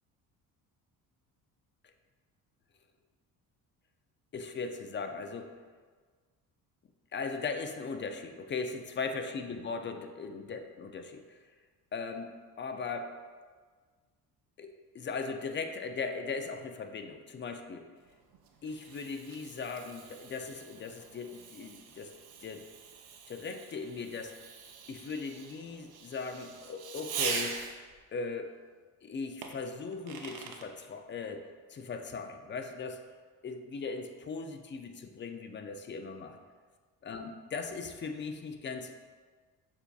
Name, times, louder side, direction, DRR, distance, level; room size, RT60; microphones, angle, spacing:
voice 1, 4.3-5.5 7.1-11.4 11.9-12.3 12.6-13.1 14.6-17.9 18.6-22.1 22.4-22.6 23.3-24.3 24.9-27.6 28.1-28.5 29.0-33.1 33.4-36.4 37.0-38.9, left 4 dB, 30° left, 6 dB, 0.4 m, -38 dB
Fireworks, 18.1-28.0 29.4-30.7, right 6 dB, 55° right, 0.6 m, -42 dB
6.6 x 2.7 x 2.3 m, 1.5 s
hypercardioid pair, 55°, 44 cm